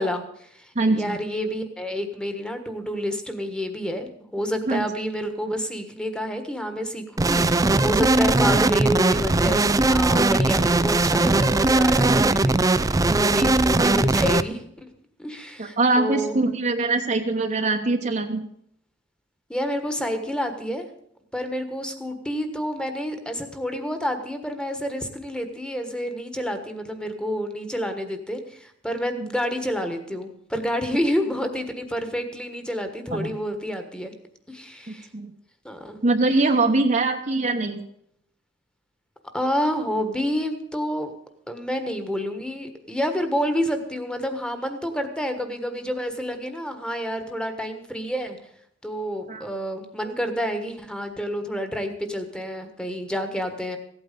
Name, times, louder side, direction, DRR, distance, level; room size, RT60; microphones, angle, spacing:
voice 1, 0.0-14.9 15.2-16.4 19.5-20.9 21.3-34.1 34.5-35.1 35.6-36.0 39.3-41.1 41.5-48.4 48.8-53.8, equal, 5° left, 7 dB, 1.4 m, -29 dB
voice 2, 0.7-1.2 4.7-4.8 15.6-18.4 29.2-29.3 33.2-33.3 34.9-35.3 36.0-37.8 49.3-49.4, right 3 dB, 40° right, 3 dB, 1.0 m, -23 dB
sound 1, 7.2-14.4, right 2 dB, 20° right, 0.4 m, -19 dB
16.0 x 8.8 x 6.8 m, 0.70 s
head